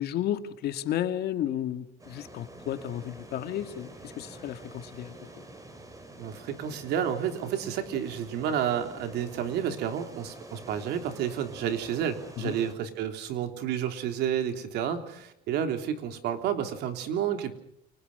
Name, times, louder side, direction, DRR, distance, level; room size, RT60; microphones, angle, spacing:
voice 1, 0.0-5.1 12.4-12.5, left 11 dB, 70° left, 8 dB, 2.2 m, -32 dB
sound 1, 2.0-12.7, right 1 dB, 20° right, 5.7 m, -47 dB
voice 2, 6.2-17.6, right 9 dB, 80° right, 6 dB, 3.5 m, -30 dB
30.0 x 25.0 x 5.6 m, 0.71 s
cardioid pair, 110°, 17 cm